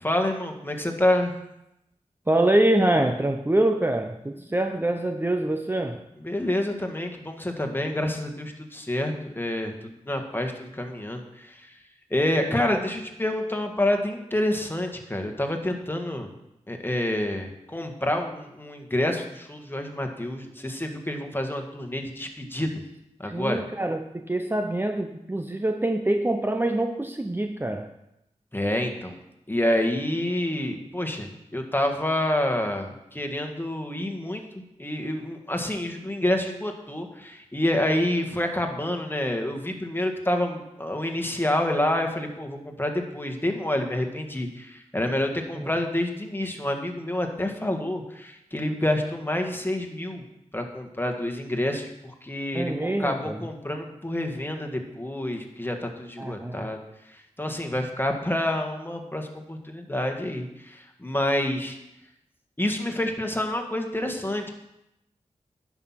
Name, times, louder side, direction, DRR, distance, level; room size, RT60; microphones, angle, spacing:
voice 1, 0.0-1.3 6.2-11.8 12.1-16.3 16.7-22.7 23.2-23.6 28.5-29.2 29.5-50.2 50.5-56.8 57.0-61.8 62.6-64.5, left 1 dB, 15° left, 4 dB, 1.8 m, -28 dB
voice 2, 2.3-6.0 12.7-12.8 23.2-27.9 45.6-45.7 52.5-53.4 56.2-56.7, right 1 dB, 15° right, 6 dB, 0.7 m, -25 dB
10.5 x 6.1 x 5.8 m, 0.85 s
cardioid pair, 45°, 13 cm